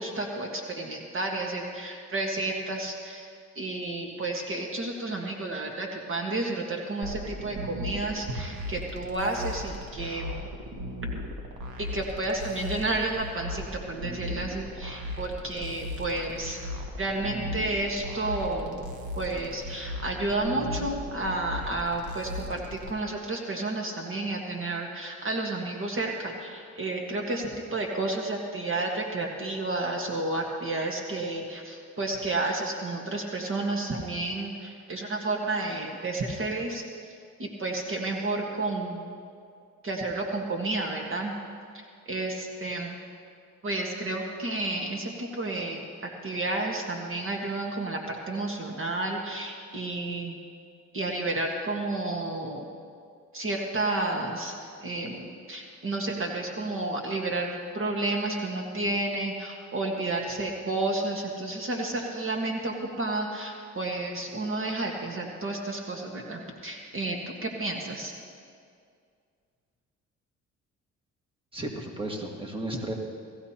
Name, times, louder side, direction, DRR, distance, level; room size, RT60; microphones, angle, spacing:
voice 1, 0.0-3.3 3.5-10.4 11.9-16.6 17.0-18.9 19.2-37.1 37.4-39.1 39.8-41.3 42.1-43.0 43.6-50.4 50.9-52.7 53.3-54.6 54.8-68.1, right 2 dB, 45° right, 1 dB, 1.6 m, -31 dB
sound 1, 7.0-22.9, left 1 dB, 85° right, 1.5 m, -37 dB
voice 2, 71.5-72.9, right 1 dB, 15° right, 0 dB, 1.8 m, -34 dB
18.5 x 15.0 x 2.9 m, 2.2 s
cardioid pair, 90°, 30 cm